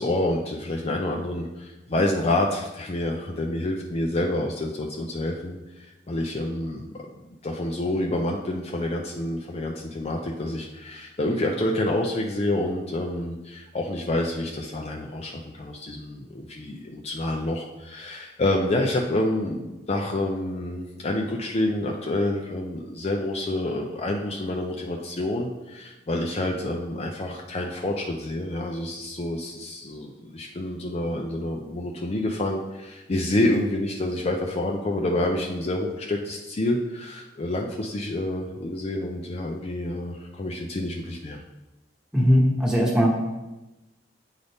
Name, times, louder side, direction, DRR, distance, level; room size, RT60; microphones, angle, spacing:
voice 1, 0.0-6.9 7.4-41.4, left 1 dB, 35° left, 1 dB, 0.5 m, -28 dB
voice 2, 42.1-43.2, equal, 5° right, -3 dB, 1.2 m, -19 dB
9.0 x 4.0 x 3.5 m, 1.0 s
head